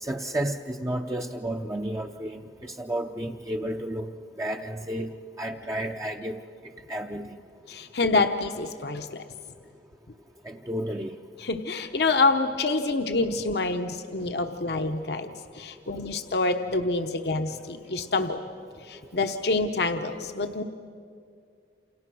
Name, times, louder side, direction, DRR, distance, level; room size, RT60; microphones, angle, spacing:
voice 1, 0.0-2.4 2.8-4.1 4.4-5.1 5.4-6.4 6.9-7.3 10.5-11.1, right 1 dB, 20° right, 2 dB, 0.7 m, -31 dB
voice 2, 7.7-9.2 11.4-18.4 18.8-20.6, left 3 dB, 65° left, 6 dB, 0.9 m, -27 dB
28.5 x 28.5 x 6.2 m, 2.2 s
head